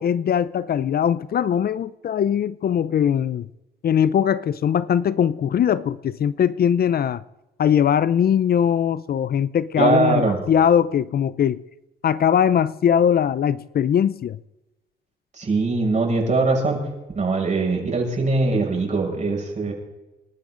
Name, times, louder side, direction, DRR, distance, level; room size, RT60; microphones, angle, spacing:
voice 1, 0.0-3.5 3.8-7.2 7.6-11.6 12.0-14.4, left 8 dB, 50° left, 0.6 m, -20 dB
voice 2, 9.8-10.4 15.4-16.8 17.1-19.7, right 3 dB, 35° right, 6.7 m, -21 dB
28.5 x 12.5 x 3.9 m
cardioid pair, 90°, 20 cm